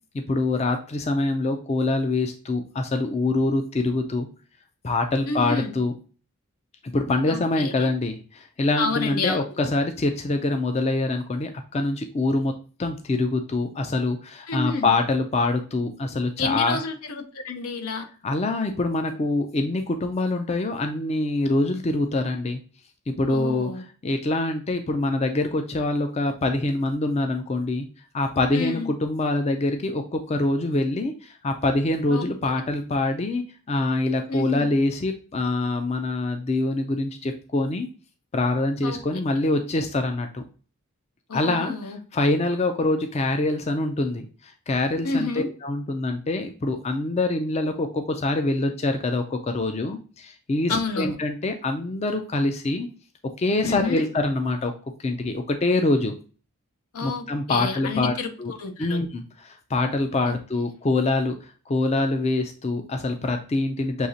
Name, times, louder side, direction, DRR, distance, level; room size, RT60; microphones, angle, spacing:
voice 1, 0.1-4.3 4.8-5.9 6.8-12.5 12.8-16.8 18.2-22.6 23.1-23.7 24.0-27.9 28.1-37.9 38.3-40.4 41.3-52.9 53.4-54.7 55.0-56.1 57.0-58.1 58.4-58.5 58.8-64.1, left 2 dB, 30° left, 6 dB, 0.4 m, -25 dB
voice 2, 5.3-5.7 7.3-7.9 8.8-9.4 14.5-14.9 16.4-18.1 23.3-23.8 28.5-28.9 32.1-32.5 34.3-34.7 38.8-39.0 41.3-42.0 45.0-45.5 50.7-51.2 53.6-54.1 56.9-59.0 60.2-60.4, left 3 dB, 80° left, 7 dB, 0.7 m, -29 dB
6.3 x 2.8 x 2.7 m, 0.38 s
head